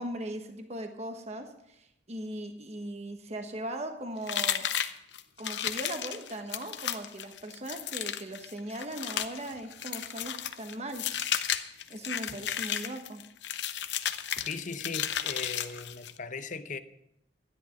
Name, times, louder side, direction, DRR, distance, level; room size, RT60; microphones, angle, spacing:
voice 1, 0.0-4.7 5.4-11.0 11.9-13.2, right 1 dB, 35° right, 1.2 m, -39 dB
sound 1, 4.3-16.2, left 10 dB, 75° left, 0.8 m, -33 dB
voice 2, 14.3-16.8, left 4 dB, 45° left, 0.8 m, -39 dB
13.0 x 11.0 x 5.9 m
head